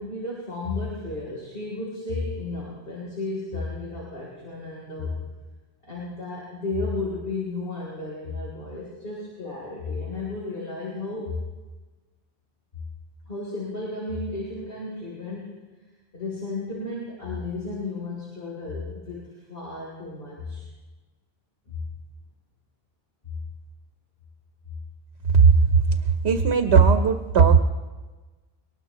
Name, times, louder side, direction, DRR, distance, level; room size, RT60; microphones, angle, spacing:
voice 1, 0.0-5.2 5.8-11.4 13.3-15.6 16.1-20.7 21.7-21.8, left 3 dB, 60° left, -6 dB, 3.8 m, -33 dB
voice 2, 25.2-27.6, right 5 dB, 90° right, 7 dB, 1.1 m, -17 dB
22.5 x 19.5 x 3.0 m, 1.2 s
omnidirectional pair, 1.1 m